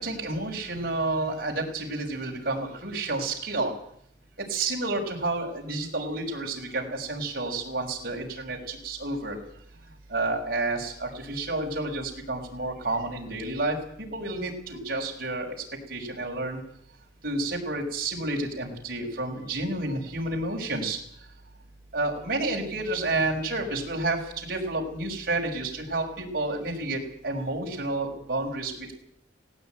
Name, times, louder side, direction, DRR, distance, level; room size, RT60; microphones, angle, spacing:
voice 1, 0.0-3.7 4.4-9.4 10.1-15.5 15.9-16.6 17.2-21.0 21.9-28.9, right 2 dB, 50° right, 1 dB, 6.0 m, -30 dB
18.0 x 17.5 x 9.3 m, 0.67 s
head